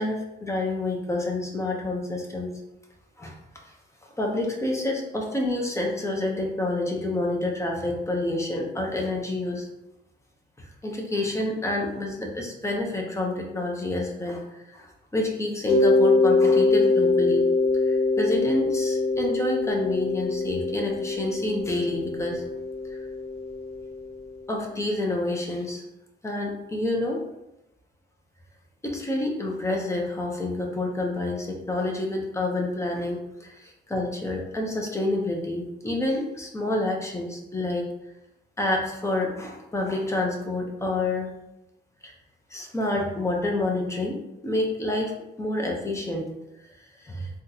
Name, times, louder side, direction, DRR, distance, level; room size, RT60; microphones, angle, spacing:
voice 1, 0.0-2.5 3.2-3.4 4.2-9.7 10.6-17.5 17.9-22.4 24.5-25.8 26.2-27.2 28.8-37.9 38.6-41.3 42.0-42.1 42.5-46.3 47.0-47.3, left 2 dB, 15° left, 0 dB, 0.8 m, -28 dB
Mallet percussion, 15.7-24.3, left 3 dB, 30° left, 1.1 m, -23 dB
3.7 x 2.3 x 2.8 m, 0.89 s
cardioid pair, 75°, 20 cm